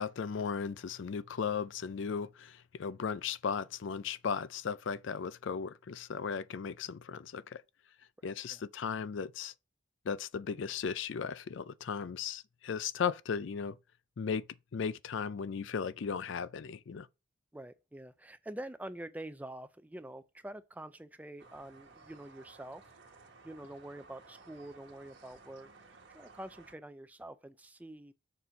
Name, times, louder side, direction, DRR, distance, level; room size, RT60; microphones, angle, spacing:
voice 1, 0.0-7.6 8.2-9.5 10.1-13.8 14.2-14.4 14.7-17.1, left 6 dB, 65° left, 0.4 m, -36 dB
voice 2, 17.5-22.9 23.4-28.1, right 1 dB, 10° right, 0.4 m, -46 dB
sound 1, 21.4-26.7, right 4 dB, 60° right, 1.4 m, -57 dB
6.9 x 4.3 x 5.1 m
head